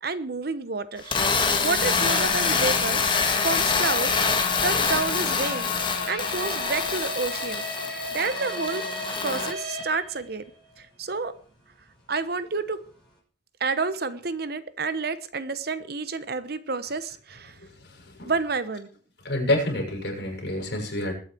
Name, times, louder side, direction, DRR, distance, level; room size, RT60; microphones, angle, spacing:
voice 1, 0.0-5.7 6.1-8.8 9.2-10.4 10.8-11.3 12.1-12.8 13.6-17.5 18.3-18.9, right 4 dB, 60° right, 13 dB, 1.1 m, -30 dB
sound 1, 1.0-9.5, left 5 dB, 25° left, 1.9 m, -25 dB
sound 2, 1.8-10.8 11.1-11.2 11.7-11.8, left 2 dB, 5° left, 6.3 m, -34 dB
voice 2, 17.6-18.3 19.2-21.1, left 1 dB, 65° left, 1 dB, 6.6 m, -28 dB
21.0 x 9.0 x 4.6 m, 0.42 s
head